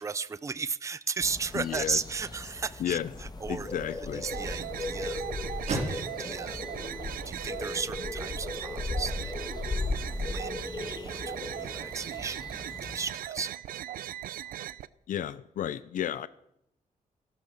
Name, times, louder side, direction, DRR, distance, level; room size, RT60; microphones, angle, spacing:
voice 1, 0.0-3.9 4.1-5.2 5.6-6.6 7.2-9.3 10.1-13.6, right 5 dB, 20° right, 0.5 m, -35 dB
sound 1, 1.2-13.1, left 3 dB, 30° left, 1.8 m, -37 dB
voice 2, 1.5-2.0 2.8-3.1 3.5-4.2 15.1-16.3, left 10 dB, 65° left, 0.7 m, -32 dB
sound 2, 2.1-8.3, right 2 dB, 50° right, 5.1 m, -42 dB
sound 3, 4.2-14.9, right 12 dB, 85° right, 0.6 m, -39 dB
15.5 x 11.5 x 7.2 m
wide cardioid pair, 140°, 14 cm